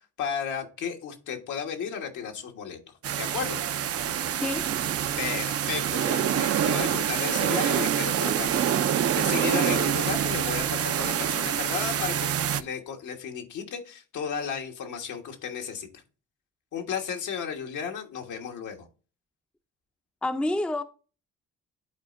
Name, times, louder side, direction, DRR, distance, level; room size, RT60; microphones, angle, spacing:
voice 1, 0.2-2.8 3.2-3.6 5.2-15.9 16.7-18.9, left 7 dB, 75° left, 1.5 m, -34 dB
sound 1, 3.0-12.6, right 9 dB, 50° right, 0.6 m, -26 dB
voice 2, 4.4-4.7 20.2-20.8, left 1 dB, 5° left, 0.5 m, -28 dB
11.0 x 4.3 x 2.5 m
cardioid pair, 90°, 30 cm